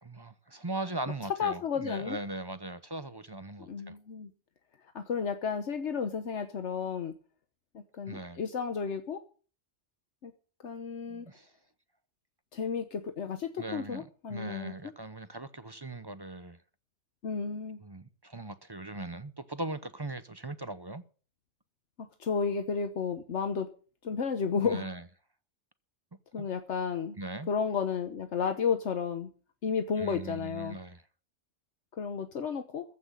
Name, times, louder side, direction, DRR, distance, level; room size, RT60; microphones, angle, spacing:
voice 1, 0.0-4.0 8.1-8.4 11.1-11.5 13.6-16.6 17.8-21.0 24.6-25.0 26.4-26.5 27.2-27.5 30.0-31.0, right 2 dB, 25° right, 0.7 m, -39 dB
voice 2, 1.4-2.2 3.7-4.3 4.9-7.1 7.9-9.2 10.2-10.3 10.6-11.3 12.5-14.7 17.2-17.8 22.2-23.7 24.0-24.9 26.3-27.2 27.5-29.3 29.6-30.8 32.0-32.8, left 6 dB, 75° left, 1.4 m, -32 dB
15.0 x 6.1 x 9.6 m
omnidirectional pair, 1.2 m